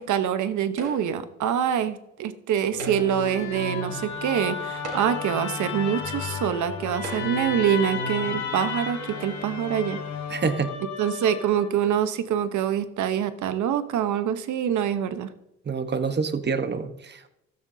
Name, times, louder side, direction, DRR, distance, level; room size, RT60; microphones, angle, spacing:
voice 1, 0.0-10.0 11.0-15.3, right 9 dB, 75° right, 11 dB, 1.0 m, -25 dB
sound 1, 0.8-1.3 2.7-3.3 4.2-4.3 4.7-5.4 6.3-6.4 7.0-7.6, right 2 dB, 55° right, 4.0 m, -39 dB
Musical instrument, 2.7-11.9, left 5 dB, 70° left, 1.9 m, -33 dB
voice 2, 10.3-10.8 15.7-17.3, right 5 dB, 35° right, 10 dB, 1.2 m, -27 dB
15.5 x 13.0 x 2.8 m, 0.85 s
cardioid pair, 90°, 30 cm